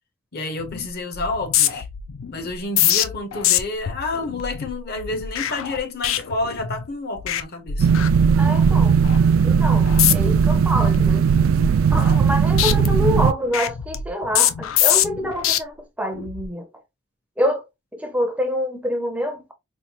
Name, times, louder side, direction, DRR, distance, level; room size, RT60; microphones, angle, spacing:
voice 1, 0.3-1.9 2.3-7.9, left 2 dB, 50° left, 0.8 m, -29 dB
sound 1, 0.6-0.9 1.1-6.9 7.2-7.4 7.7-8.6 9.0-9.3 9.9-10.4 10.8-12.3 12.6-15.6 16.1-16.5, left 11 dB, 75° left, 0.4 m, -24 dB
sound 2, 7.8-13.3, right 6 dB, 85° right, 0.3 m, -17 dB
voice 2, 8.4-9.0 9.4-11.3 11.9-16.7 17.4-17.6 17.9-19.4, left 1 dB, 5° right, 0.5 m, -26 dB
4.3 x 2.3 x 2.9 m
head